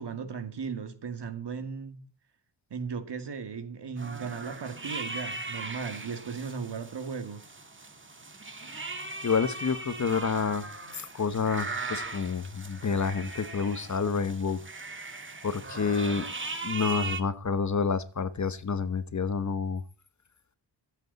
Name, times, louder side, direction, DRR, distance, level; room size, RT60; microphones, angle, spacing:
voice 1, 0.0-2.0 2.7-7.4, right 6 dB, 65° right, 2.4 m, -36 dB
sound 1, 4.0-17.2, right 3 dB, 25° right, 1.8 m, -39 dB
voice 2, 9.2-10.7 10.9-14.6 14.9-15.0 15.4-16.2 16.6-19.8, left 5 dB, 40° left, 1.1 m, -29 dB
24.5 x 8.3 x 4.1 m
wide cardioid pair, 120°, 45 cm